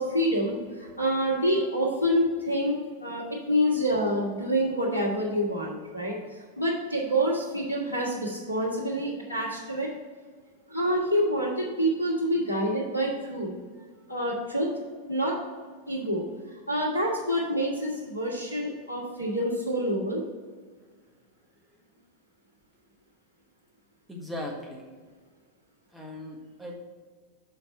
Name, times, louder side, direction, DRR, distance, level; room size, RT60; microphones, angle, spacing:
voice 1, 0.0-2.8 3.0-9.9 10.7-13.5 14.1-14.7 15.1-15.4 15.9-16.2 16.7-20.2, equal, 80° left, -3 dB, 1.7 m, -27 dB
voice 2, 24.1-24.8 25.9-26.8, left 1 dB, 5° right, -2 dB, 1.6 m, -38 dB
6.9 x 4.3 x 6.4 m, 1.5 s
figure-of-eight pair, 90°, 0 cm